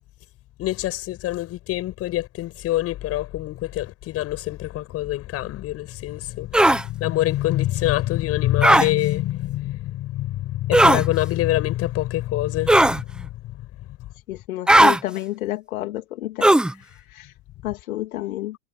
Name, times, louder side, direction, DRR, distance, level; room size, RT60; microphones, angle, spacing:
voice 1, 0.6-12.8, left 15 dB, 30° left, 6.8 m, -25 dB
sound 1, 6.5-6.8 8.6-8.9 10.7-11.0 12.7-13.0 14.7-15.0 16.4-16.7, right 1 dB, ahead, 1.0 m, -15 dB
voice 2, 14.3-16.5 16.8-17.3 17.6-18.6, left 16 dB, 65° left, 2.8 m, -30 dB
hypercardioid pair, 130°, 44 cm